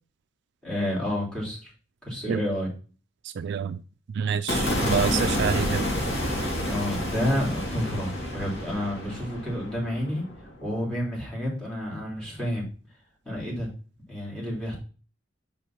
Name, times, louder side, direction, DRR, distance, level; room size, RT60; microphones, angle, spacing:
voice 1, 0.6-1.7 2.0-2.7 4.7-5.0 6.7-10.2 10.6-12.6 13.2-13.7 14.1-14.8, equal, 5° left, 3.1 m, -30 dB
voice 2, 3.2-3.8 4.2-5.9, right 7 dB, 55° right, 0.3 m, -27 dB
sound 1, 4.5-10.7, equal, 55° left, 2.9 m, -29 dB
5.5 x 5.0 x 5.9 m
head